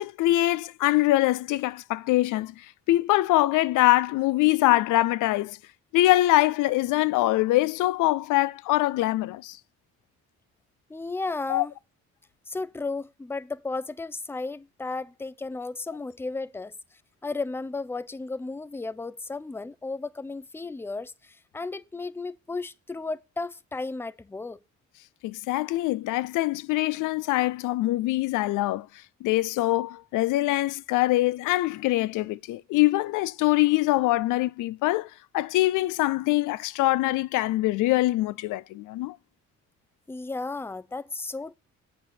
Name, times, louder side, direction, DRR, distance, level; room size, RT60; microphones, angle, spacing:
voice 1, 0.0-5.6 5.9-9.6 11.5-11.7 25.2-28.9 29.2-39.2, left 17 dB, 85° left, 0.5 m, -24 dB
voice 2, 10.9-11.7 12.5-16.7 17.2-24.6 40.1-41.5, left 3 dB, 10° left, 0.5 m, -34 dB
8.0 x 4.8 x 5.8 m
cardioid pair, 90°, 30 cm